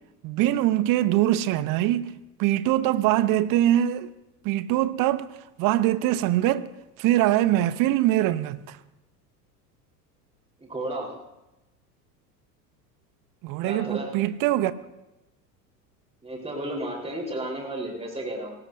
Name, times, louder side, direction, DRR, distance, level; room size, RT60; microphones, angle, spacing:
voice 1, 0.2-2.1 2.4-4.1 4.4-6.7 7.0-8.8 13.4-14.7, right 13 dB, 40° right, 0.9 m, -23 dB
voice 2, 10.6-11.2 13.6-14.1 16.2-18.5, right 1 dB, 10° right, 4.2 m, -33 dB
23.5 x 19.0 x 2.7 m
figure-of-eight pair, 80°, 50 cm